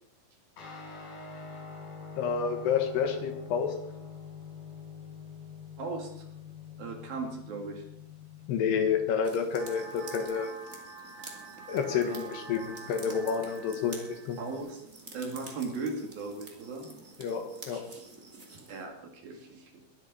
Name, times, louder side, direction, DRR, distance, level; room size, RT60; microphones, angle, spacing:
Guitar, 0.6-10.3, left 6 dB, 55° left, 5.6 m, -46 dB
voice 1, 2.2-3.7 8.5-10.5 11.7-14.4 17.2-17.8, left 6 dB, 70° left, 5 dB, 3.1 m, -29 dB
voice 2, 5.8-6.3 6.8-7.8 12.5-12.6 14.4-14.8 15.1-16.9 18.7-19.7, right 4 dB, 55° right, 2 dB, 3.5 m, -37 dB
sound 1, 9.2-18.8, right 3 dB, 25° right, 1.8 m, -49 dB
sound 2, 9.6-14.6, right 4 dB, 80° right, 4.2 m, -47 dB
22.0 x 10.5 x 4.2 m, 0.75 s
omnidirectional pair, 5.4 m